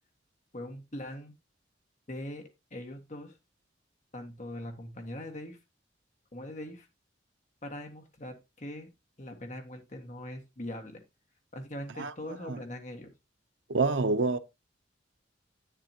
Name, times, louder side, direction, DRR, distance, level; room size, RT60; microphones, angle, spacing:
voice 1, 0.5-1.3 2.1-3.4 4.1-5.6 6.3-6.9 7.6-8.9 9.2-11.0 11.5-13.1, left 1 dB, 40° left, 1.6 m, -41 dB
voice 2, 13.7-14.4, right 3 dB, 85° right, 0.7 m, -26 dB
8.8 x 7.5 x 2.9 m
head